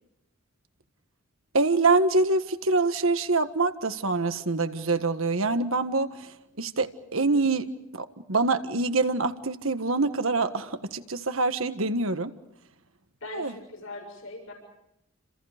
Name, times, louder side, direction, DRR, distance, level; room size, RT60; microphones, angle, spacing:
voice 1, 1.5-6.3 6.6-7.7 7.9-12.3 13.3-13.5, right 3 dB, 75° right, 9 dB, 1.6 m, -25 dB
voice 2, 13.2-14.5, left 2 dB, 85° left, 2 dB, 6.9 m, -40 dB
30.0 x 27.5 x 5.1 m, 0.84 s
head